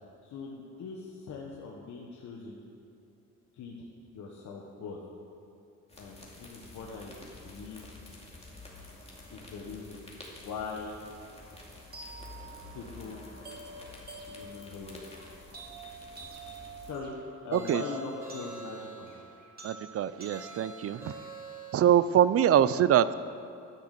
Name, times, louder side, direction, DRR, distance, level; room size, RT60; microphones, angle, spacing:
voice 1, 0.2-2.6 3.5-3.8 4.1-5.0 6.0-7.2 7.4-7.8 9.3-10.1 10.4-11.0 12.7-13.3 14.3-15.0 16.9-17.1 17.4-19.1, left 4 dB, 70° left, -2 dB, 1.4 m, -41 dB
sound 1, 5.9-16.9, left 2 dB, 20° left, 2.4 m, -49 dB
sound 2, 11.9-22.0, right 3 dB, 30° right, 2.3 m, -48 dB
sound 3, 17.5-19.3 20.3-22.1, right 3 dB, 10° right, 2.9 m, -46 dB
voice 2, 17.5-17.8 19.6-21.1 21.7-23.1, right 10 dB, 50° right, 16 dB, 0.5 m, -24 dB
12.0 x 6.7 x 6.6 m, 2.7 s
cardioid pair, 90°, 30 cm